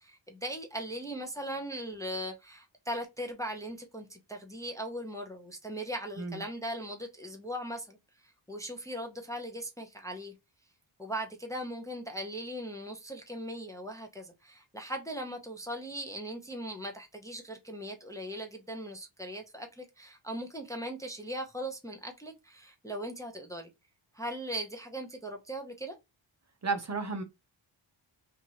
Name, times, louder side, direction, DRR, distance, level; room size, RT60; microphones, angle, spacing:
voice 1, 0.0-8.0 8.2-10.3 11.0-23.7 24.1-26.0, equal, 5° left, 0.6 m, -39 dB
voice 2, 26.6-27.2, right 4 dB, 35° right, 0.6 m, -32 dB
2.9 x 2.5 x 2.8 m
wide cardioid pair, 100°, 47 cm